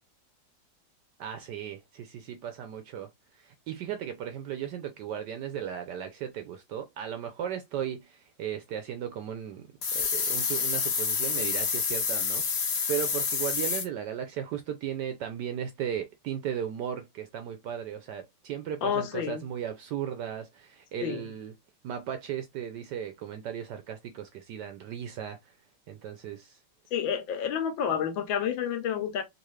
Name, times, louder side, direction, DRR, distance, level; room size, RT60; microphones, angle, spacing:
voice 1, 1.2-12.4 12.9-21.5 21.8-25.4 25.9-26.6, right 9 dB, 75° right, 1.0 m, -36 dB
sound 1, 9.8-13.8, left 5 dB, 55° left, 0.7 m, -28 dB
voice 2, 18.8-19.4 21.0-21.2 26.9-29.2, left 8 dB, 75° left, 1.4 m, -29 dB
3.9 x 2.6 x 3.1 m
omnidirectional pair, 2.2 m